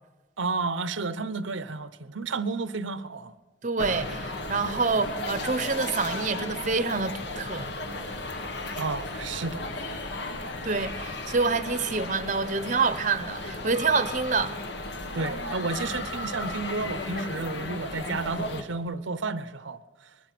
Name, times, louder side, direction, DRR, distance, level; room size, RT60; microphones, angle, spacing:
voice 1, 0.4-3.3 8.8-9.7 15.1-20.1, right 3 dB, 75° right, 0.8 m, -32 dB
voice 2, 3.6-7.7 10.6-14.6, right 4 dB, 40° right, 0.9 m, -27 dB
sound 1, 3.8-18.6, left 2 dB, 60° left, 1.8 m, -35 dB
24.5 x 21.0 x 6.1 m
head